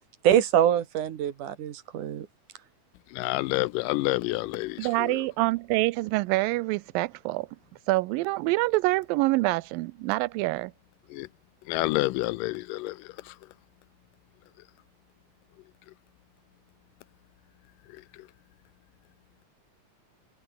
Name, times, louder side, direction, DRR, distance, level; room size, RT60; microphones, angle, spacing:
voice 1, 0.2-2.3, right 10 dB, 65° right, 3.0 m, -24 dB
voice 2, 3.2-4.8 11.1-11.3 11.7-12.9, left 19 dB, 80° left, 2.1 m, -28 dB
voice 3, 4.8-7.5 7.9-10.7, right 21 dB, 85° right, 2.3 m, -26 dB
omnidirectional pair, 4.0 m